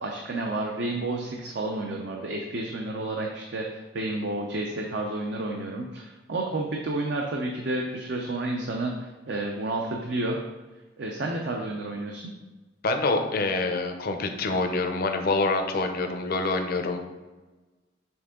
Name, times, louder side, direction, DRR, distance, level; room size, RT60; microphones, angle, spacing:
voice 1, 0.0-10.4 11.0-12.3, right 2 dB, 65° right, 1 dB, 0.6 m, -31 dB
voice 2, 12.8-17.0, left 3 dB, 55° left, 5 dB, 0.6 m, -26 dB
7.0 x 3.6 x 3.7 m, 1.2 s
head